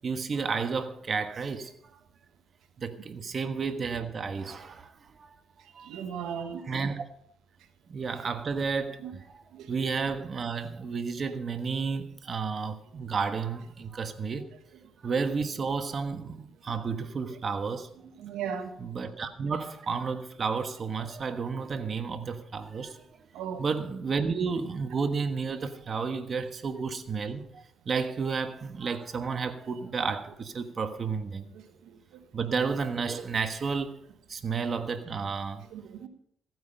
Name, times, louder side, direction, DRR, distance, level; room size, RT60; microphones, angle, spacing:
voice 1, 0.0-2.0 2.8-5.4 5.7-5.9 6.3-7.1 7.9-14.5 15.0-17.9 18.8-23.0 23.6-31.5 32.3-34.0 34.3-35.6, right 5 dB, 45° right, 1.3 m, -32 dB
voice 2, 5.8-6.6 9.0-9.1 9.5-9.7 17.3-17.4 18.2-18.7 23.3-23.6 31.5-32.0 35.7-36.1, right 7 dB, 90° right, 1.2 m, -37 dB
15.0 x 9.5 x 5.5 m
cardioid pair, 90°, 0 cm